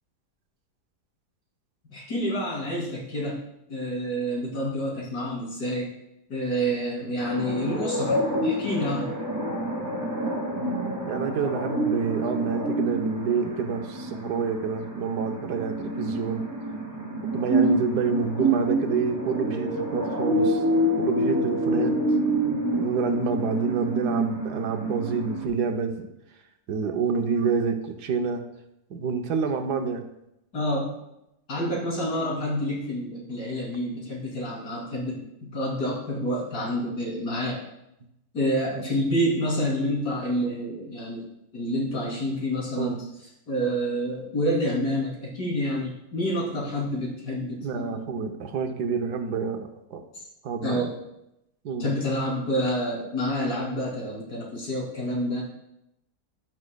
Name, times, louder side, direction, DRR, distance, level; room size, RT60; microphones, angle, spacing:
voice 1, 1.9-3.4 3.7-5.9 6.3-9.1 30.5-31.0 31.5-37.6 38.3-41.3 41.5-43.0 43.5-48.0 50.1-50.2 50.6-50.9 51.8-55.4, equal, 70° left, -4 dB, 3.3 m, -28 dB
sound 1, 7.2-25.5, right 1 dB, 10° right, 1.7 m, -27 dB
voice 2, 11.1-16.5 17.3-20.6 21.0-22.0 22.7-26.1 26.7-28.4 28.9-30.0 35.1-35.2 38.7-38.8 42.8-43.0 47.6-50.0 50.4-50.9 51.6-51.9, right 5 dB, 75° right, 5 dB, 1.4 m, -28 dB
15.5 x 6.2 x 2.3 m, 0.83 s
omnidirectional pair, 1.7 m